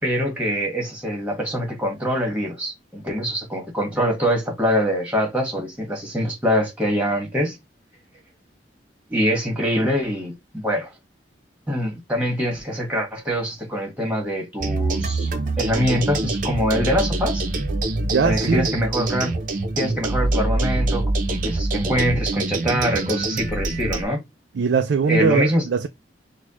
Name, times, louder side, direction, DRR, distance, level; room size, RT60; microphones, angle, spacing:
voice 1, 0.0-7.6 9.1-10.9 11.7-17.5 18.2-19.4 19.8-24.2 25.1-25.6, equal, 10° right, 1.6 m, -24 dB
sound 1, 14.6-24.0, right 2 dB, 50° right, 0.8 m, -24 dB
voice 2, 18.1-18.7 24.6-25.9, right 5 dB, 85° right, 0.4 m, -21 dB
6.2 x 2.3 x 3.0 m
head